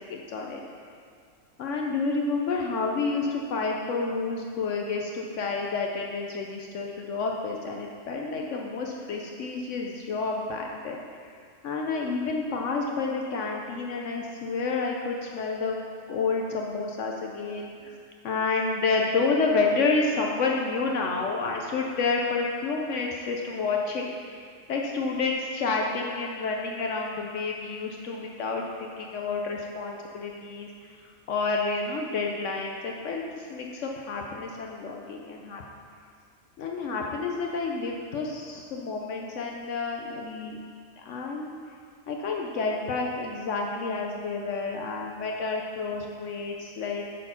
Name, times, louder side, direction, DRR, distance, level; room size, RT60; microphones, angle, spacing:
voice 1, 0.1-0.6 1.6-11.0 11.6-15.8 16.1-18.0 18.2-31.0 31.3-35.6 36.6-40.6 41.0-41.5 42.1-47.0, left 4 dB, 70° left, 0 dB, 1.0 m, -29 dB
8.7 x 4.3 x 5.6 m, 2.3 s
omnidirectional pair, 1.3 m